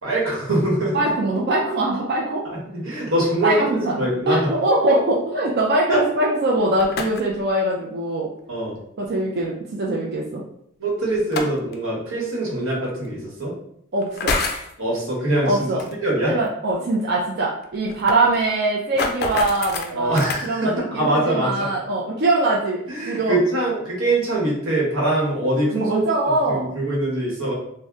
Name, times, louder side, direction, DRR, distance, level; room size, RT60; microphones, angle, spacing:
voice 1, 0.0-1.1 2.6-4.5 5.9-6.0 8.5-8.8 10.8-13.5 14.8-15.7 16.0-16.3 19.9-21.7 22.9-26.1 26.5-27.5, right 1 dB, 90° right, -4 dB, 1.2 m, -23 dB
voice 2, 0.9-2.4 3.4-8.3 9.0-10.4 13.9-14.4 15.4-15.8 16.2-23.3 25.7-26.7, right 2 dB, 55° right, -3 dB, 0.4 m, -22 dB
sound 1, 6.6-7.4 9.0-9.1 11.1-11.7 12.9-13.0 14.0-14.7 15.8-15.9 16.3-16.4 16.7-16.8 17.0-17.1 17.6-20.5, left 3 dB, 50° left, 0.4 m, -27 dB
2.7 x 2.1 x 3.5 m, 0.71 s
head